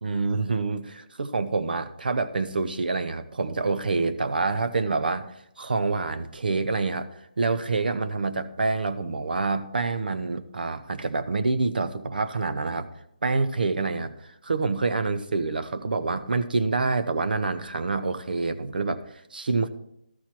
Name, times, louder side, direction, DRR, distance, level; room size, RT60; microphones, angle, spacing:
voice 1, 0.0-5.3 5.6-7.1 7.4-12.9 13.2-19.0 19.3-19.7, right 3 dB, 80° right, 12 dB, 0.8 m, -27 dB
13.0 x 4.4 x 6.0 m, 0.78 s
hypercardioid pair, 165°, 5 cm